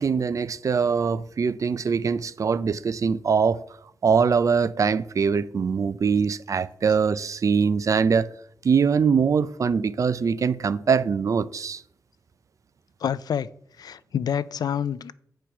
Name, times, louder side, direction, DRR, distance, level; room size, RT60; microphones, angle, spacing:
voice 1, 0.0-3.6 4.0-8.3 8.6-11.8, right 6 dB, 50° right, 0.4 m, -22 dB
voice 2, 13.0-13.5 13.8-15.1, left 8 dB, 70° left, 0.4 m, -27 dB
8.3 x 4.5 x 5.7 m
wide cardioid pair, 105°, 7 cm